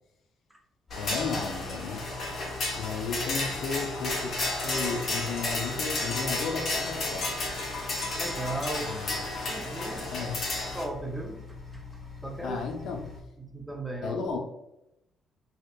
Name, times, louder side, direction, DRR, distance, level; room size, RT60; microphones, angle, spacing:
sound 1, 0.9-10.8, left 2 dB, 60° left, 0.8 m, -32 dB
sound 2, 0.9-13.2, left 4 dB, 20° left, 1.4 m, -44 dB
voice 1, 1.0-2.0 2.8-7.2 8.9-9.2 10.1-10.4 12.4-13.1 14.0-14.4, left 4 dB, 80° left, 2 dB, 0.5 m, -34 dB
voice 2, 8.2-8.9 9.3-10.3 10.7-11.9 12.2-12.6 13.4-14.2, right 2 dB, 5° right, 2 dB, 0.5 m, -37 dB
2.8 x 2.1 x 2.3 m, 0.84 s
cardioid pair, 90°, 0 cm